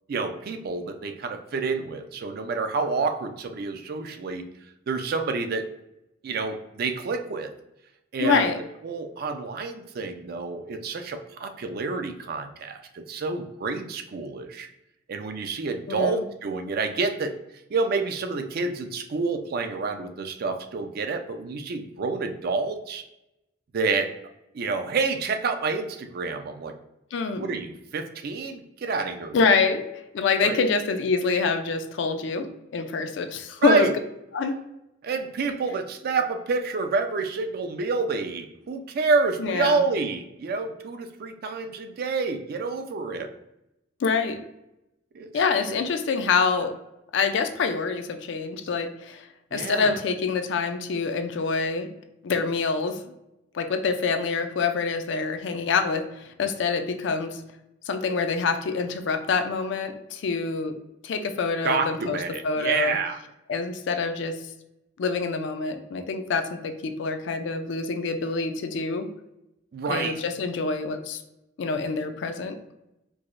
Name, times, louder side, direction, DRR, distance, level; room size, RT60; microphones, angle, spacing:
voice 1, 0.1-4.5 4.9-5.7 6.2-7.5 8.1-8.5 8.8-14.7 15.1-17.4 17.7-23.0 23.7-24.1 24.5-26.7 27.3-29.4 30.4-30.7 33.6-33.9 35.0-43.3 45.1-45.8 49.5-50.0 61.6-63.2 69.7-70.2, right 4 dB, 50° right, 6 dB, 0.4 m, -28 dB
voice 2, 8.2-8.6 15.9-16.2 27.1-27.5 29.3-29.8 30.1-33.9 34.3-34.6 39.4-39.8 44.0-44.4 45.3-46.7 47.1-51.9 52.2-53.0 53.5-57.4 57.9-60.7 61.0-62.2 62.4-63.0 63.5-64.4 65.0-69.1 69.9-71.2 71.6-72.6, left 4 dB, 65° left, 7 dB, 0.4 m, -26 dB
4.6 x 2.0 x 2.5 m, 0.88 s
head